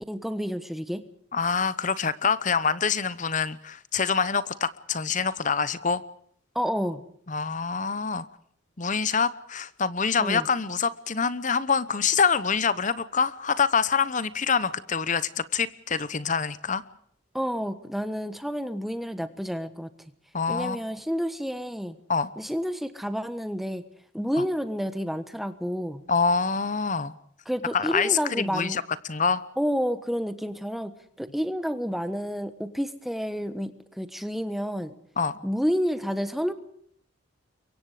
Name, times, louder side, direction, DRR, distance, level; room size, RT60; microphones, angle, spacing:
voice 1, 0.1-1.0 6.5-7.0 10.2-10.5 17.3-19.9 20.5-22.0 22.4-23.8 24.1-26.0 27.5-28.8 29.6-30.9 31.2-33.7 34.0-34.9 35.4-36.5, equal, ahead, 10 dB, 1.2 m, -29 dB
voice 2, 1.3-6.0 7.3-8.3 8.8-16.8 20.3-20.8 22.1-22.3 24.4-24.5 26.1-27.1 27.7-28.8 29.1-29.4 35.2-35.4, left 5 dB, 35° left, 16 dB, 0.9 m, -25 dB
28.5 x 23.5 x 5.0 m, 0.66 s
head